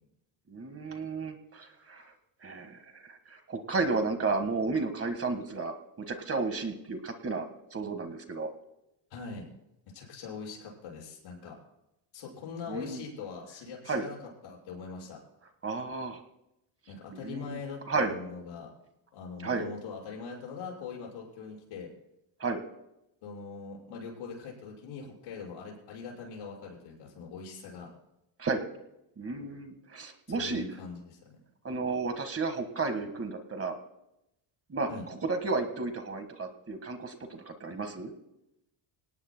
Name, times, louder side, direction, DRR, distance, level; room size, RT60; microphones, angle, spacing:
voice 1, 0.5-2.1 2.4-8.5 12.7-13.0 13.9-14.1 15.6-16.2 17.1-17.6 17.9-18.1 19.4-19.7 22.4-22.6 28.4-28.6 29.2-30.6 31.6-33.8 34.7-38.1, right 3 dB, 30° right, 7 dB, 1.7 m, -33 dB
voice 2, 9.1-9.5 9.9-11.5 12.1-14.2 14.4-15.2 16.9-18.7 19.1-21.9 23.2-27.9 30.3-31.4 34.9-35.0, left 5 dB, 85° left, -3 dB, 6.4 m, -42 dB
26.5 x 18.0 x 2.2 m, 0.88 s
cardioid pair, 120°, 47 cm